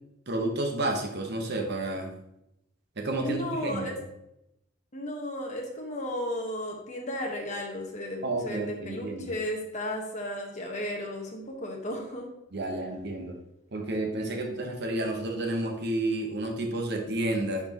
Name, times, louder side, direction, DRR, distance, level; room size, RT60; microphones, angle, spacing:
voice 1, 0.3-2.1 3.0-4.0 8.2-9.3 12.5-13.4 13.7-17.7, right 2 dB, 50° right, 3 dB, 1.0 m, -31 dB
voice 2, 3.2-3.9 4.9-12.3, left 1 dB, 35° left, 0 dB, 1.3 m, -34 dB
10.5 x 4.3 x 2.9 m, 0.84 s
head